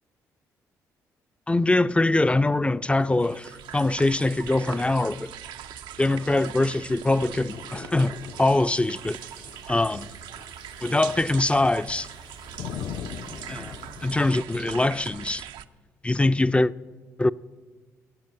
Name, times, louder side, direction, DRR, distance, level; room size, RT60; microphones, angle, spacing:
voice 1, 1.5-5.3 6.0-9.2 9.7-10.1 10.8-12.1 13.5-13.7 14.0-15.4 16.0-16.7 17.2-17.3, left 2 dB, 15° left, 0.4 m, -23 dB
sound 1, 3.0-15.7, right 10 dB, 75° right, 0.5 m, -41 dB
sound 2, 4.7-14.4, left 7 dB, 60° left, 0.7 m, -42 dB
16.5 x 7.3 x 8.8 m
hypercardioid pair, 45°, 8 cm